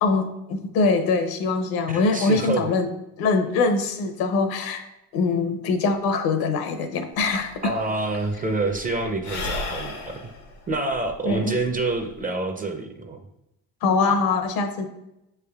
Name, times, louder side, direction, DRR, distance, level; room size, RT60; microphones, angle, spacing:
voice 1, 0.0-2.9 3.2-4.9 5.1-7.7 11.2-11.6 13.8-14.9, left 4 dB, 65° left, 8 dB, 0.7 m, -23 dB
voice 2, 1.9-2.6 7.6-10.2 10.7-13.2, right 2 dB, 20° right, 6 dB, 0.5 m, -27 dB
Sigh / Breathing, 7.2-7.3 7.5-12.2, left 3 dB, 90° left, 1.1 m, -35 dB
6.4 x 3.4 x 2.3 m, 0.87 s
supercardioid pair, 80°, 40 cm